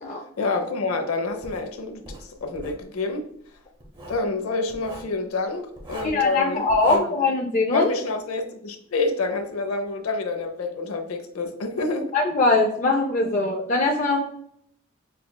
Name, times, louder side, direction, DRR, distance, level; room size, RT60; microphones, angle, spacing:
voice 1, 0.4-3.3 4.1-7.2 7.7-12.1, left 3 dB, 90° left, 6 dB, 0.6 m, -28 dB
Writing, 1.4-1.7 2.0-2.8 3.8-4.3 4.7-5.1 5.8-6.2 6.7-7.0, right 1 dB, 20° right, 0.7 m, -40 dB
voice 2, 6.0-7.9 12.1-14.2, left 3 dB, 35° left, 0 dB, 0.4 m, -21 dB
6.3 x 2.3 x 2.2 m, 0.68 s
head